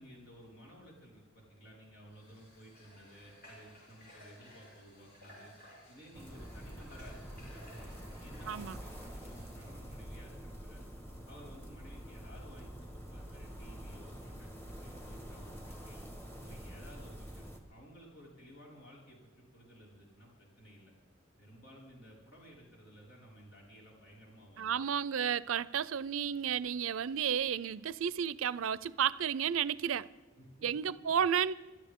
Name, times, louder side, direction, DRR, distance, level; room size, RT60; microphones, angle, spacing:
voice 1, 0.0-5.5 5.9-10.8 11.2-14.5 14.8-16.1 16.4-20.9 21.4-24.9 30.4-30.7, equal, 75° left, 5.3 m, -56 dB
Water / Water tap faucet, 2.1-9.6, equal, 50° left, 6.2 m, -58 dB
sound 1, 6.1-17.6, equal, 10° left, 1.5 m, -47 dB
voice 2, 8.5-8.8 24.6-30.1 30.6-31.5, right 8 dB, 90° right, 0.5 m, -32 dB
24.5 x 13.0 x 3.7 m
head